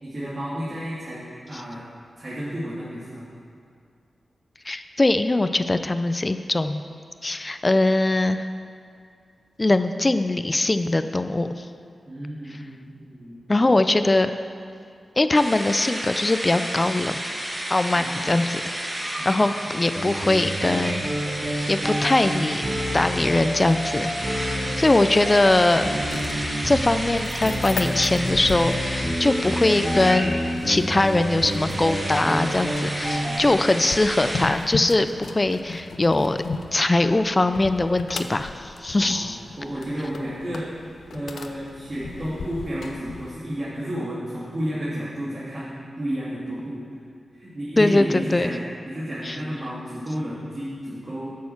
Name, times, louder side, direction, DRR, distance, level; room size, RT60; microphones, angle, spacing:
voice 1, 0.0-1.8 2.2-3.2 12.1-13.7 17.9-18.4 19.2-19.5 24.4-25.1 33.1-33.9 39.0-40.7 41.1-46.8 47.3-51.2, equal, 45° right, -9 dB, 2.5 m, -32 dB
voice 2, 4.7-6.8 7.2-8.5 9.6-11.7 13.5-14.3 15.2-17.2 17.7-18.6 19.2-21.0 21.3-22.6 22.9-24.1 24.5-25.9 26.6-36.4 36.7-39.4 47.8-48.5 49.2-49.4, left 2 dB, 30° left, 10 dB, 0.5 m, -21 dB
sound 1, 15.3-34.5, right 1 dB, 25° right, 1.9 m, -32 dB
sound 2, 19.9-33.5, equal, 5° right, 2.4 m, -29 dB
sound 3, 24.7-43.3, left 4 dB, 85° left, 0.6 m, -37 dB
10.0 x 6.6 x 7.1 m, 2.3 s
cardioid pair, 55°, 0 cm